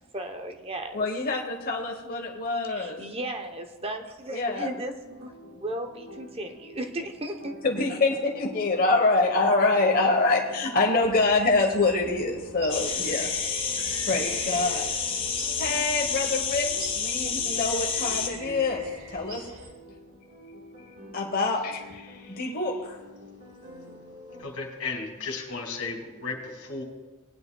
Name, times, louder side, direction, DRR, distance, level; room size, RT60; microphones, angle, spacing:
voice 1, 0.1-1.1 2.7-7.5, right 1 dB, 25° right, 5 dB, 0.8 m, -35 dB
voice 2, 0.9-3.0 4.3-4.7 7.6-13.3 14.1-14.9 15.6-19.4 21.1-23.0, left 3 dB, 40° left, 1 dB, 1.0 m, -25 dB
sound 1, 5.1-24.4, left 1 dB, 60° right, 3.6 m, -47 dB
sound 2, 11.0-19.7, right 3 dB, 90° right, 1.8 m, -44 dB
sound 3, 12.7-18.3, left 6 dB, 25° left, 1.4 m, -29 dB
voice 3, 24.4-26.8, left 4 dB, 75° left, 2 dB, 2.2 m, -34 dB
18.5 x 10.5 x 2.3 m, 1.2 s
head